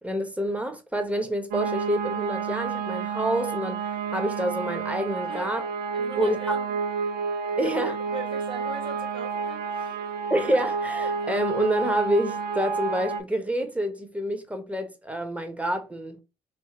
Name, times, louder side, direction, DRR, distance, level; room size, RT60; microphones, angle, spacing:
voice 1, 0.0-5.6 6.2-6.6 7.6-8.0 10.3-16.2, right 1 dB, 10° right, 1.0 m, -28 dB
sound 1, 1.5-13.2, right 5 dB, 65° right, 0.5 m, -30 dB
voice 2, 5.2-5.6 5.9-6.8 7.4-7.7 8.1-10.0, right 4 dB, 30° right, 1.3 m, -40 dB
3.4 x 2.3 x 2.9 m
hypercardioid pair, 45°, 17 cm